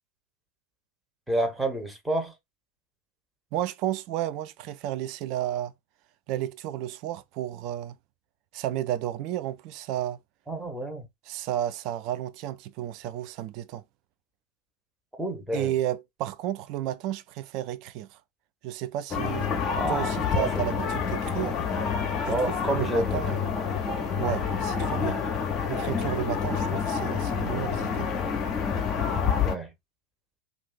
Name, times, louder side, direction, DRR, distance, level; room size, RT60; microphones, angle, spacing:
voice 1, 1.3-2.3 10.5-11.1 15.2-15.7 19.8-20.5 22.3-23.2 29.4-29.7, right 1 dB, 5° right, 0.9 m, -29 dB
voice 2, 3.5-5.7 6.3-8.0 8.5-10.2 11.3-13.8 15.5-18.2 18.6-19.5 19.9-21.6 22.2-22.4 22.7-23.7 24.2-25.2 25.7-28.1, right 12 dB, 40° right, 0.3 m, -32 dB
sound 1, 19.1-29.5, left 6 dB, 30° left, 0.7 m, -28 dB
2.6 x 2.4 x 3.7 m
figure-of-eight pair, 90°, 0 cm